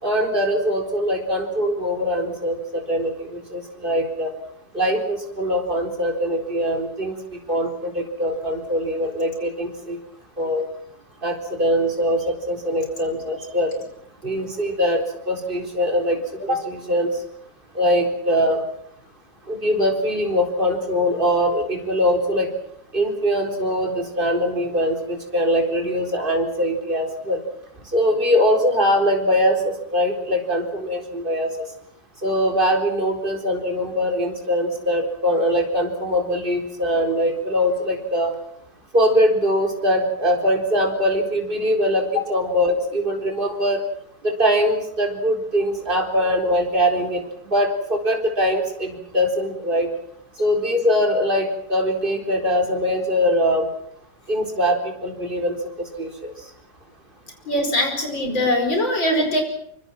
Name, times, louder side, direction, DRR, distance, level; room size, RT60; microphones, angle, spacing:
voice 1, 0.0-4.3 4.7-7.2 7.5-10.0 10.4-10.6 11.2-13.8 14.2-17.1 17.7-18.6 19.5-22.5 22.9-27.4 27.9-31.7 32.2-38.3 38.9-43.8 44.2-49.9 50.4-53.7 54.3-55.5 56.0-56.3, equal, 25° right, 3 dB, 4.3 m, -22 dB
voice 2, 57.5-59.4, left 1 dB, 80° left, 5 dB, 5.7 m, -21 dB
24.5 x 24.0 x 6.1 m, 0.69 s
omnidirectional pair, 2.0 m